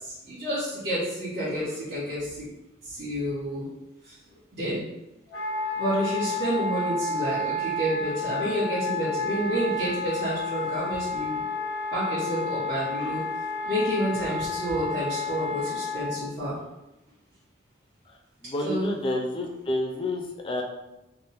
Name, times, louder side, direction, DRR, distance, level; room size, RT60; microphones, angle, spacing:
voice 1, 0.0-2.5 2.8-3.6 4.0-4.1 4.6-4.8 5.8-11.4 11.9-13.2 13.6-16.6 18.6-18.9, equal, 70° right, -13 dB, 1.2 m, -29 dB
Wind instrument woodwind instrument, 5.3-16.1, left 3 dB, 90° left, 0.7 m, -31 dB
voice 2, 18.4-20.6, left 1 dB, 25° left, 2 dB, 0.4 m, -29 dB
3.4 x 2.1 x 2.8 m, 0.95 s
head